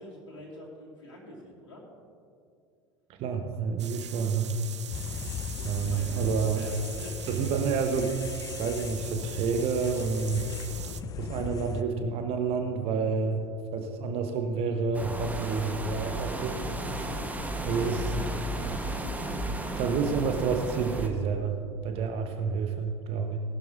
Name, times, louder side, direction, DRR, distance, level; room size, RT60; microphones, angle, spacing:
voice 1, 0.0-1.8 5.5-7.5, left 1 dB, 80° left, -4 dB, 2.7 m, -46 dB
voice 2, 3.2-4.6 5.6-6.7 7.3-8.2 8.5-10.5 11.2-13.4 13.7-17.0 17.6-18.2 19.8-21.6 21.8-23.4, right 5 dB, 40° right, 5 dB, 1.0 m, -29 dB
sound 1, 3.8-11.0, right 9 dB, 75° right, 0.5 m, -43 dB
sound 2, 4.9-11.8, left 8 dB, 25° left, 0.4 m, -39 dB
sound 3, 14.9-21.1, right 1 dB, 10° right, 1.1 m, -34 dB
19.0 x 12.0 x 2.6 m, 2.4 s
figure-of-eight pair, 80°, 15 cm